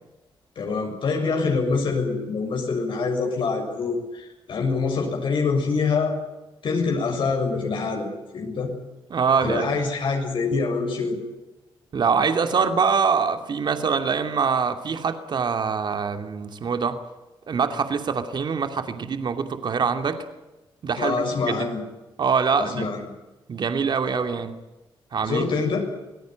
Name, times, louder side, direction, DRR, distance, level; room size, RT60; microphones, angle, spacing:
voice 1, 0.5-6.1 6.6-8.1 8.3-8.7 9.4-11.2 21.0-21.8 22.6-23.1 25.2-25.8, left 4 dB, 70° left, 1 dB, 6.9 m, -25 dB
voice 2, 9.1-9.7 11.9-17.0 17.5-20.2 20.8-21.7 22.2-22.9 23.5-24.5 25.1-25.4, right 5 dB, 55° right, 8 dB, 2.7 m, -24 dB
25.0 x 18.0 x 9.3 m, 1.0 s
cardioid pair, 90°, 9 cm